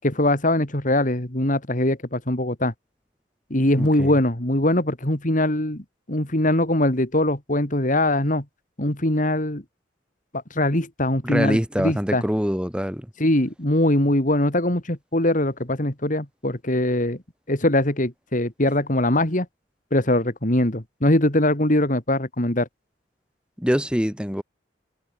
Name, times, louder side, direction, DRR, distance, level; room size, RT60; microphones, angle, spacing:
voice 1, 0.0-2.7 3.5-5.8 6.1-8.4 8.8-9.6 10.5-12.2 13.2-17.2 17.5-19.5 19.9-22.7, left 1 dB, 45° left, 3.5 m, -22 dB
voice 2, 3.8-4.1 11.2-13.1 23.6-24.4, equal, 5° right, 4.5 m, -24 dB
head